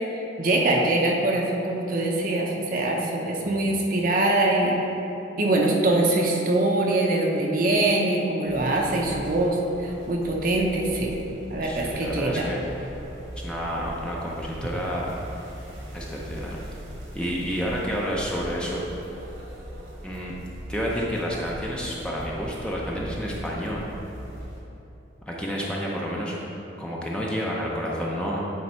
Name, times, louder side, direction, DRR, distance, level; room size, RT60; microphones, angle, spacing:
voice 1, 0.4-4.8 5.4-11.2 11.5-12.4, right 2 dB, 45° right, -1 dB, 0.7 m, -23 dB
sound 1, 8.5-24.6, equal, 80° right, 1.3 m, -40 dB
voice 2, 11.6-12.6 13.4-15.1 15.9-16.6 17.1-18.8 20.0-20.3 20.7-23.9 25.3-26.4 26.8-28.4, equal, 5° left, -4 dB, 0.6 m, -30 dB
8.6 x 3.3 x 4.5 m, 3.0 s
head